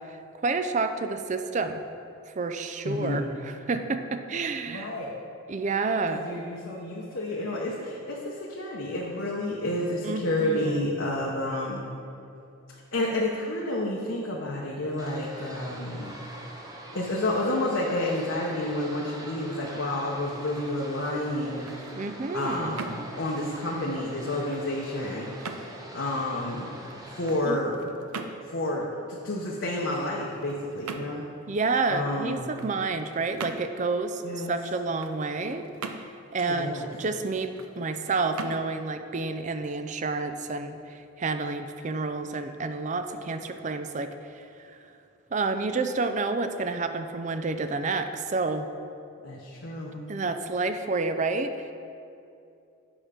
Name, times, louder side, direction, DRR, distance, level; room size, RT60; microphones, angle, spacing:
voice 1, 0.1-1.8 2.4-4.9 5.5-6.2 10.0-10.8 21.9-22.8 27.5-27.6 31.5-35.7 36.3-44.4 45.3-48.7 50.1-51.7, right 3 dB, 35° right, 8 dB, 0.4 m, -29 dB
voice 2, 2.8-3.3 4.7-5.1 6.1-11.9 12.9-16.2 16.9-21.7 22.3-25.3 25.9-26.8 27.1-27.8 28.5-31.2 31.9-32.5 34.2-34.5 36.5-36.9 49.2-50.0, left 1 dB, 60° left, -3 dB, 0.9 m, -30 dB
sound 1, 15.0-27.4, right 1 dB, 15° right, 0.8 m, -43 dB
sound 2, 21.5-40.3, right 4 dB, 85° right, 0.6 m, -44 dB
8.8 x 6.0 x 5.0 m, 2.6 s
head